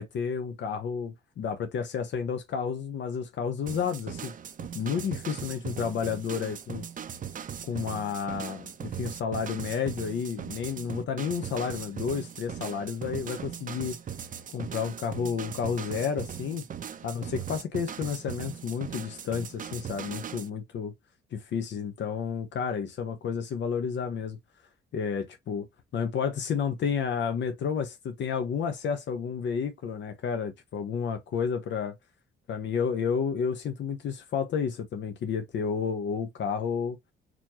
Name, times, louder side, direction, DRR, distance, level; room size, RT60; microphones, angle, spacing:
voice 1, 0.0-4.3 4.7-6.8 7.6-14.0 14.5-16.6 17.0-20.9 21.3-24.4 24.9-25.7 25.9-32.0 32.5-37.0, left 6 dB, 65° left, 0.9 m, -31 dB
sound 1, 3.7-20.5, right 8 dB, 40° right, 0.6 m, -39 dB
4.2 x 2.9 x 2.8 m
cardioid pair, 90°, 20 cm